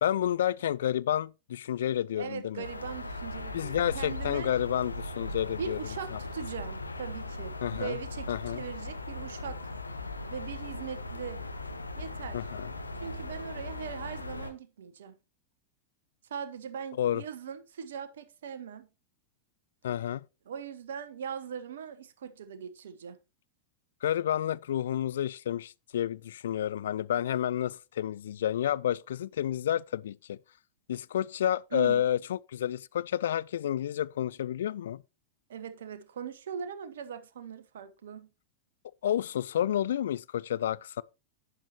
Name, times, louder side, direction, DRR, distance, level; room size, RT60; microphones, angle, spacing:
voice 1, 0.0-2.6 3.5-5.8 7.6-8.0 8.3-8.6 12.3-12.7 17.0-17.2 19.8-20.2 24.0-30.4 30.9-35.0 39.0-41.0, left 10 dB, 60° left, 0.4 m, -30 dB
voice 2, 2.2-4.6 5.6-9.6 10.3-11.5 12.0-12.4 13.0-15.1 16.3-18.9 20.4-23.2 31.7-32.1 35.5-38.3, right 7 dB, 60° right, 1.1 m, -40 dB
sound 1, 2.6-14.5, left 2 dB, 80° left, 1.0 m, -39 dB
11.0 x 8.6 x 3.0 m
figure-of-eight pair, 90°, 0 cm